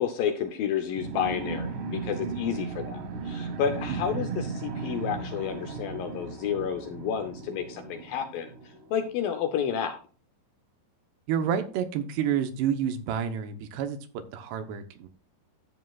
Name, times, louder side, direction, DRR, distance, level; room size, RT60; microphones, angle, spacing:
voice 1, 0.0-8.5 8.9-10.0, left 8 dB, 75° left, 7 dB, 2.1 m, -30 dB
sound 1, 0.9-9.1, right 4 dB, 65° right, 2.7 m, -36 dB
voice 2, 11.3-15.1, right 8 dB, 80° right, 8 dB, 3.0 m, -29 dB
12.5 x 8.2 x 2.4 m, 0.37 s
omnidirectional pair, 4.9 m